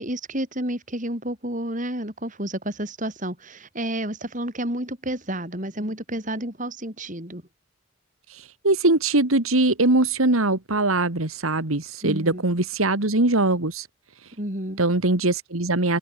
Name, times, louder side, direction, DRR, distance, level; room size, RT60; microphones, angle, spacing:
voice 1, 0.0-7.4 12.0-12.4 14.4-14.8, right 1 dB, 35° right, 6.4 m, -30 dB
voice 2, 8.3-13.9 14.2-14.3 14.8-16.0, right 2 dB, 80° right, 2.2 m, -22 dB
head